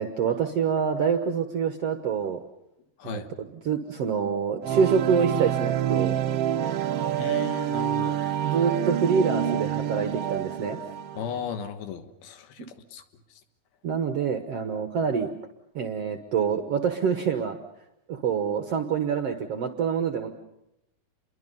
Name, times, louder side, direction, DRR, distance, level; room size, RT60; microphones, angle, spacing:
voice 1, 0.0-2.4 3.0-3.2 3.6-6.2 8.4-10.8 13.8-15.3 15.7-17.6 18.1-20.3, right 6 dB, 65° right, 6 dB, 1.6 m, -26 dB
sound 1, 4.6-11.5, right 10 dB, 85° right, 1.3 m, -27 dB
voice 2, 7.2-8.2 11.1-13.0 13.3-13.4, left 7 dB, 80° left, 8 dB, 3.3 m, -36 dB
29.0 x 22.5 x 5.6 m, 0.87 s
omnidirectional pair, 4.4 m